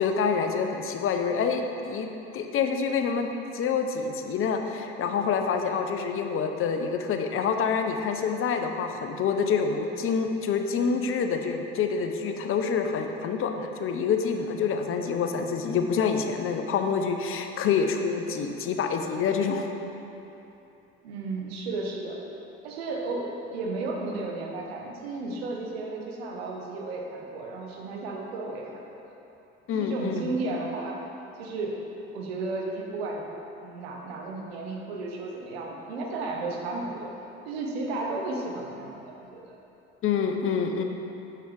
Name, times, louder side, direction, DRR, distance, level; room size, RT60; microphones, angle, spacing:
voice 1, 0.0-2.1 2.3-3.3 3.5-19.7 29.7-30.3 40.0-40.8, left 6 dB, 45° left, 5 dB, 0.7 m, -27 dB
voice 2, 21.0-22.2 22.6-29.0 29.7-31.0 31.4-31.8 32.1-33.2 33.6-37.1 37.5-39.6, right 3 dB, 80° right, 0 dB, 1.1 m, -33 dB
7.6 x 6.8 x 3.4 m, 2.9 s
hypercardioid pair, 65°, 31 cm